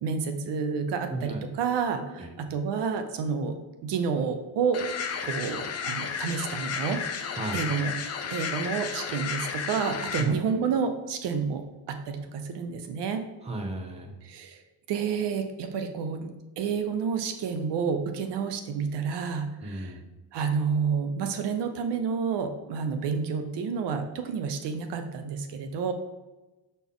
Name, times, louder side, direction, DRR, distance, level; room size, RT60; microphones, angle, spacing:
voice 1, 0.0-3.6 3.8-4.8 5.2-7.9 8.3-13.2 14.2-14.6 14.9-20.0 20.3-25.9, right 6 dB, 70° right, 7 dB, 0.8 m, -30 dB
sound 1, 4.7-10.2, left 6 dB, 35° left, 0.6 m, -33 dB
voice 2, 7.3-7.6 10.2-10.3 13.4-14.1 19.6-20.1, right 2 dB, 15° right, 2 dB, 0.9 m, -34 dB
7.0 x 4.2 x 3.6 m, 1.1 s
cardioid pair, 145°, 42 cm